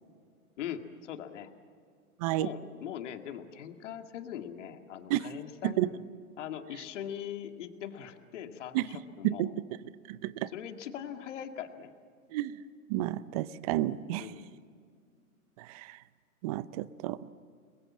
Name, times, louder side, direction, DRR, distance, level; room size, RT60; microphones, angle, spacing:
voice 1, 0.6-1.5 2.4-5.9 6.4-9.5 10.5-11.9 14.2-14.6, left 9 dB, 55° left, 6 dB, 2.1 m, -41 dB
voice 2, 10.1-10.5 12.3-12.6 12.9-14.3 15.6-16.0 16.4-17.2, right 15 dB, 25° right, 18 dB, 0.6 m, -31 dB
30.0 x 21.5 x 7.5 m, 2.1 s
hypercardioid pair, 130°, 44 cm